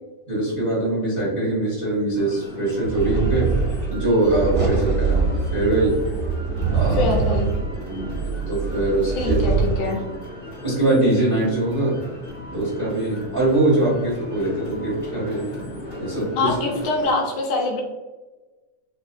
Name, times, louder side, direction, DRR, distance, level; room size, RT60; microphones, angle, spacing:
voice 1, 0.3-3.5 3.9-6.0 6.7-7.1 7.9-8.2 8.5-9.4 10.6-12.0 12.5-15.5 15.9-16.5, right 2 dB, 70° right, -9 dB, 0.4 m, -22 dB
sound 1, 2.1-17.1, equal, 50° left, 1.0 m, -36 dB
sound 2, 2.8-9.8, right 5 dB, 55° right, 0.8 m, -24 dB
voice 2, 7.0-7.5 9.2-10.0 16.4-17.8, left 2 dB, 75° left, -1 dB, 2.1 m, -24 dB
5.0 x 2.2 x 2.6 m, 1.2 s
omnidirectional pair, 3.7 m